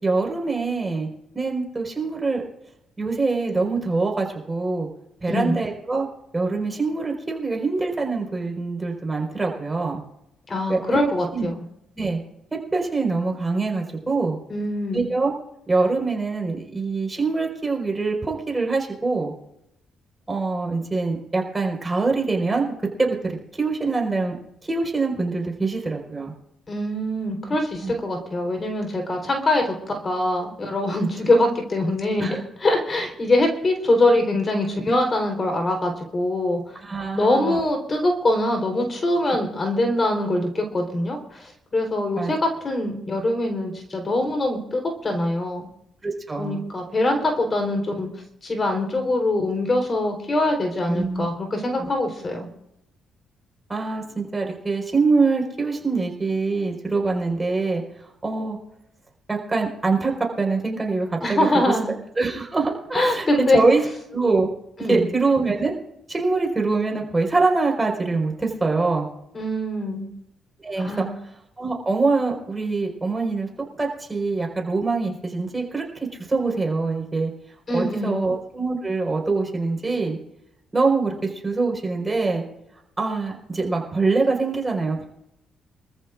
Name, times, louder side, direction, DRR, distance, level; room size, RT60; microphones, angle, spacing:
voice 1, 0.0-1.1 1.3-2.4 3.0-4.9 5.2-6.1 6.3-10.0 10.7-11.0 11.3-11.5 11.9-12.2 12.7-14.4 14.9-15.3 15.7-19.3 20.3-24.3 24.6-26.3 27.8-27.9 32.2-32.4 36.8-37.6 39.3-39.4 42.2-42.3 46.0-46.6 50.9-51.3 51.8-51.9 53.7-57.8 58.2-58.6 59.3-61.7 62.2-63.3 63.5-63.8 64.1-64.5 64.9-65.8 66.1-69.1 70.6-71.1 71.6-73.5 73.8-77.3 77.7-80.2 80.7-82.4 83.0-85.1, right 3 dB, 20° right, 0 dB, 4.7 m, -24 dB
voice 2, 5.3-5.6 10.5-11.7 14.5-15.1 26.7-29.7 30.0-32.3 32.6-36.8 37.1-45.7 46.4-48.1 48.4-52.5 61.2-61.9 62.9-63.6 64.8-65.1 69.3-70.1 70.8-71.2 77.7-78.2, left 1 dB, 35° left, 3 dB, 3.9 m, -23 dB
25.5 x 14.0 x 2.5 m, 0.80 s
cardioid pair, 90°, 0 cm